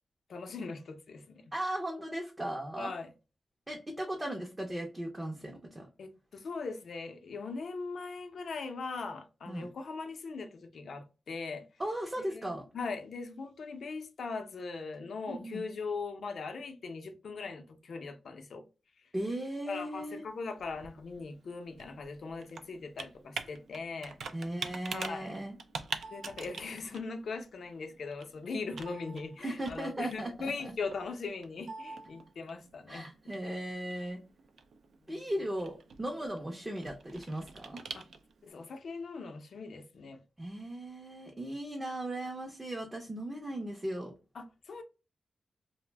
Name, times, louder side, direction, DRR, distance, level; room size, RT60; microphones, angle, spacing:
voice 1, 0.3-1.5 2.8-3.1 6.0-11.7 12.2-18.6 19.7-24.2 24.9-25.3 26.1-33.3 35.1-35.3 38.4-40.2 44.3-44.8, left 4 dB, 65° left, 0.5 m, -40 dB
voice 2, 1.5-2.9 3.7-5.9 9.5-9.7 11.8-12.6 15.3-15.6 19.1-20.2 24.3-25.6 29.4-30.7 32.9-34.2 35.1-37.8 40.4-44.1, right 1 dB, 20° right, 0.5 m, -37 dB
Computer keyboard, 20.2-38.5, right 5 dB, 75° right, 0.3 m, -46 dB
2.4 x 2.0 x 3.3 m
wide cardioid pair, 110°, 0 cm